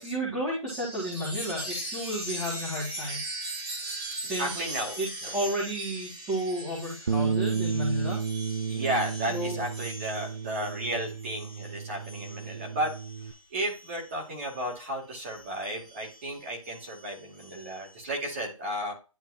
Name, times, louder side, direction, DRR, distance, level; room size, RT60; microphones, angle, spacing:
voice 1, 0.0-3.2 4.2-8.2 9.3-9.6, right 1 dB, 10° right, -9 dB, 1.8 m, -32 dB
Chime, 0.7-14.7 15.1-17.9, right 1 dB, 50° right, 3.6 m, -40 dB
voice 2, 4.4-5.3 8.7-12.9 13.2-18.9, right 1 dB, 25° right, -1 dB, 2.4 m, -33 dB
Bass guitar, 7.1-13.3, right 6 dB, 65° right, 0.7 m, -32 dB
11.0 x 4.0 x 2.6 m, 0.31 s
hypercardioid pair, 180°, 17 cm